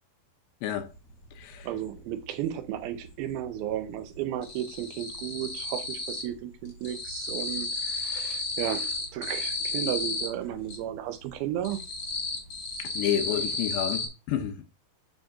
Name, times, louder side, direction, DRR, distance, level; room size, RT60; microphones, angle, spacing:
sound 1, 0.8-0.9 1.2-2.5 2.8-3.5 3.7-6.4 6.6-10.8 11.2-14.1, left 3 dB, 40° left, 1.7 m, -33 dB
voice 1, 1.6-11.8, right 11 dB, 85° right, 2.6 m, -34 dB
voice 2, 13.0-14.7, left 10 dB, 80° left, 2.4 m, -30 dB
7.0 x 6.5 x 2.5 m
omnidirectional pair, 4.3 m